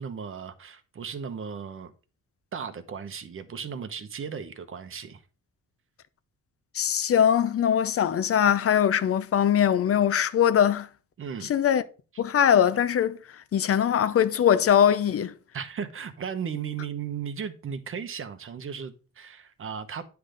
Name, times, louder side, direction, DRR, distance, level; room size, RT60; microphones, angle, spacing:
voice 1, 0.0-1.9 2.5-5.2 11.2-11.5 15.5-20.0, right 7 dB, 45° right, 1.0 m, -36 dB
voice 2, 6.7-10.9 11.5-11.8 12.2-15.3, left 9 dB, 50° left, 0.6 m, -22 dB
9.7 x 3.5 x 5.1 m
cardioid pair, 125°, 30 cm